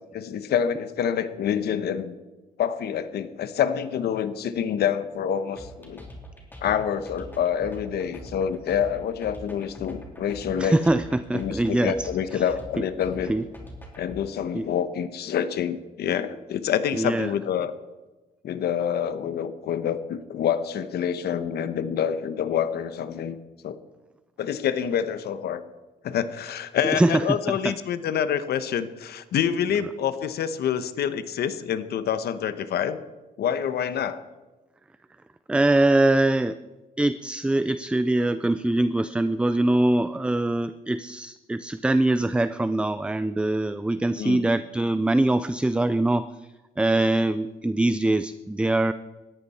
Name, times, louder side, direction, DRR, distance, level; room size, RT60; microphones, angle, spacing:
voice 1, 0.1-2.1 2.6-6.0 6.6-10.8 11.3-13.3 14.0-17.7 18.4-23.4 23.6-23.8 24.4-25.6 26.0-33.0 33.4-34.2 44.2-44.4, left 8 dB, 80° left, 12 dB, 1.1 m, -27 dB
sound 1, 5.6-14.2, equal, 10° left, 3.3 m, -42 dB
voice 2, 10.6-12.4 13.3-13.4 14.5-14.7 16.9-17.3 26.9-27.7 35.5-36.6 37.0-46.3 46.8-48.9, right 2 dB, 5° right, 13 dB, 0.4 m, -23 dB
19.5 x 14.0 x 4.3 m, 1.2 s
cardioid pair, 115°, 16 cm